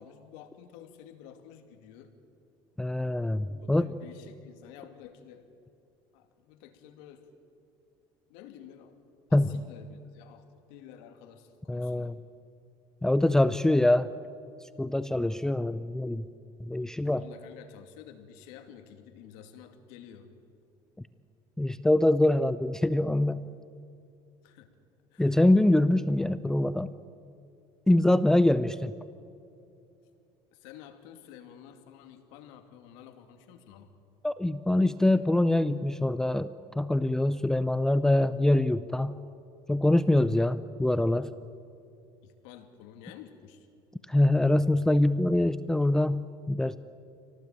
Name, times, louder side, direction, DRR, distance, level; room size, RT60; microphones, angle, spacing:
voice 1, 0.0-2.1 3.6-5.5 6.1-7.3 8.3-9.0 9.3-12.2 16.8-20.3 24.4-24.7 25.1-25.4 30.5-33.9 42.2-43.7, left 9 dB, 85° left, 6 dB, 2.5 m, -50 dB
voice 2, 2.8-3.9 9.3-9.5 11.7-12.1 13.0-14.1 14.8-16.3 16.6-17.2 21.6-23.5 25.2-26.9 27.9-28.9 34.2-39.2 39.7-41.3 44.1-46.8, left 1 dB, 5° left, 13 dB, 0.5 m, -24 dB
27.0 x 18.0 x 9.1 m, 2.6 s
cardioid pair, 145°, 11 cm